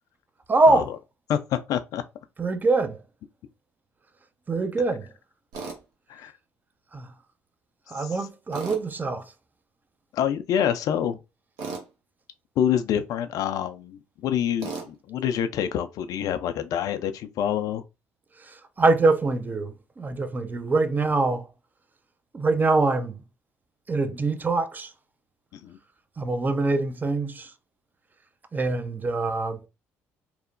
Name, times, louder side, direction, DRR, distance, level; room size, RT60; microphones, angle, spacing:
voice 1, 0.5-0.9 2.4-3.0 4.5-5.1 6.9-7.1 7.9-9.3 18.4-21.5 22.3-23.2 23.9-24.9 26.2-27.5 28.5-29.7, right 3 dB, 25° right, 0.4 m, -24 dB
voice 2, 1.3-2.0 6.1-6.3 8.0-8.2 10.1-11.2 12.6-17.8 25.5-25.8, left 9 dB, 60° left, 0.4 m, -27 dB
Tools, 5.5-5.8 8.5-8.8 11.6-11.9 14.6-14.9, right 4 dB, 70° right, 0.8 m, -34 dB
2.9 x 2.0 x 2.5 m
hypercardioid pair, 55°, 7 cm